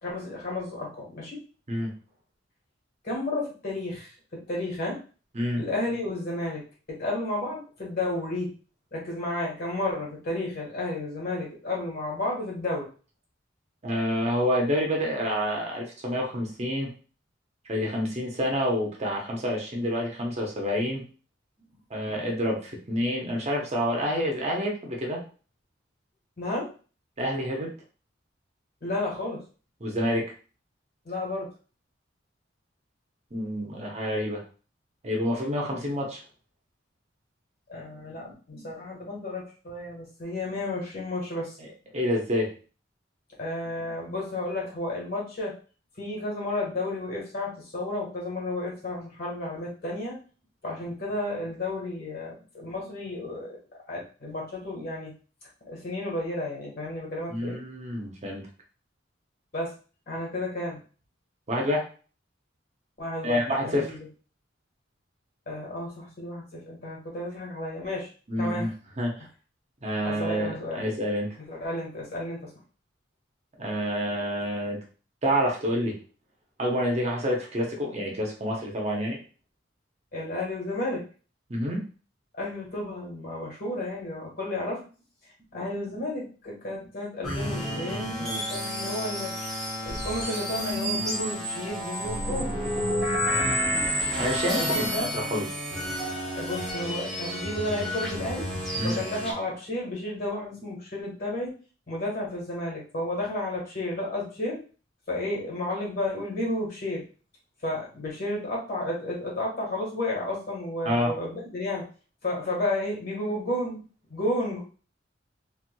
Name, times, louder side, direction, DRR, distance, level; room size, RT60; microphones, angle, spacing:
voice 1, 0.0-1.4 3.0-5.0 5.6-6.6 6.9-8.5 8.9-12.9 26.4-26.7 28.8-29.4 31.0-31.5 37.7-41.6 43.4-45.5 46.0-50.2 50.6-53.6 53.9-55.1 55.6-57.6 59.5-59.7 60.1-60.8 63.0-64.0 65.5-68.1 68.4-68.7 70.0-70.8 71.4-72.5 80.1-81.0 82.3-84.8 85.5-89.3 89.8-92.6 94.6-95.1 96.3-98.5 98.8-101.5 101.9-104.6 105.1-107.0 107.6-111.8 112.2-113.8 114.1-114.6, left 1 dB, 55° left, -3 dB, 1.5 m, -32 dB
voice 2, 13.8-16.9 17.7-21.0 21.9-25.2 27.2-27.7 29.8-30.2 33.3-34.4 35.0-36.2 41.6-41.7 41.9-42.5 57.3-58.4 61.5-61.8 63.2-64.0 68.3-68.7 69.0-69.3 69.8-71.3 73.6-74.8 75.2-76.0 76.6-79.2 81.5-81.8 94.2-95.5 98.8-99.0 110.8-111.1, equal, 35° right, 0 dB, 0.8 m, -28 dB
sound 1, 87.2-99.3, equal, ahead, 0.9 m, -30 dB
3.2 x 3.1 x 2.2 m, 0.37 s
head